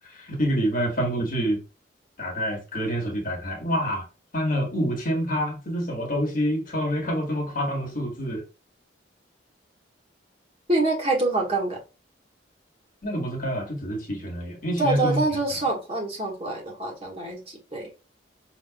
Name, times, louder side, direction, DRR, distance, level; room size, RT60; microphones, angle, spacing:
voice 1, 0.0-1.6 2.2-4.0 4.3-8.4 13.0-15.2, equal, 45° left, 1.5 m, -27 dB
voice 2, 10.7-11.8 14.8-17.9, right 2 dB, 30° right, 1.4 m, -26 dB
5.7 x 2.8 x 2.3 m
head